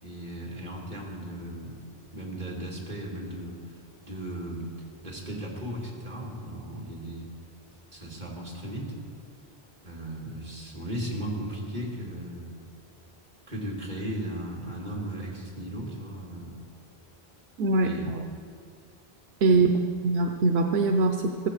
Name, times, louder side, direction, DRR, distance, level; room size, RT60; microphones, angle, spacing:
voice 1, 0.0-1.8 2.1-3.6 4.0-4.7 5.0-7.3 7.9-8.9 9.8-12.6 13.5-16.5 17.8-18.2 19.5-19.7, right 1 dB, 45° right, -3 dB, 3.0 m, -36 dB
voice 2, 17.6-18.0 19.4-19.7 20.0-21.5, right 3 dB, 85° right, 4 dB, 1.0 m, -22 dB
15.0 x 14.5 x 4.9 m, 2.3 s
omnidirectional pair, 1.0 m